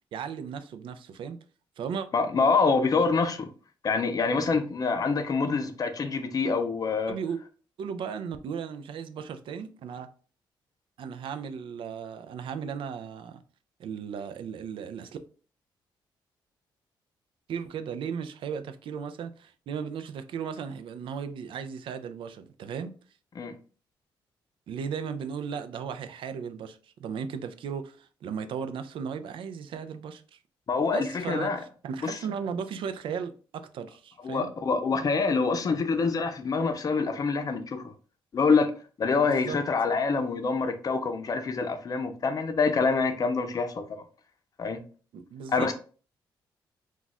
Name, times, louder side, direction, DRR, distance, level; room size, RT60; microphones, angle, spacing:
voice 1, 0.1-1.4 1.8-2.1 7.1-7.4 7.8-10.1 11.0-13.4 13.8-15.2 17.5-22.9 24.7-30.4 30.9-34.5 39.2-39.6 45.1-45.7, right 7 dB, 70° right, 0.4 m, -36 dB
voice 2, 2.1-3.5 3.8-7.2 23.4-23.5 30.7-31.6 32.0-32.2 34.2-37.9 38.3-38.7 39.0-44.0 44.6-44.8 45.5-45.7, left 4 dB, 45° left, 0.5 m, -26 dB
2.4 x 2.3 x 4.0 m
cardioid pair, 90°, 9 cm